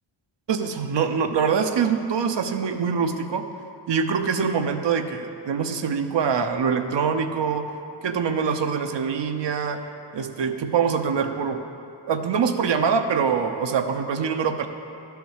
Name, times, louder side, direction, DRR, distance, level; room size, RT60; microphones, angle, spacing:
voice 1, 0.5-3.4 3.9-7.6 8.0-9.8 10.1-11.7 12.1-14.7, right 6 dB, 60° right, 6 dB, 0.8 m, -24 dB
11.0 x 4.6 x 7.3 m, 2.6 s
cardioid pair, 55°, 50 cm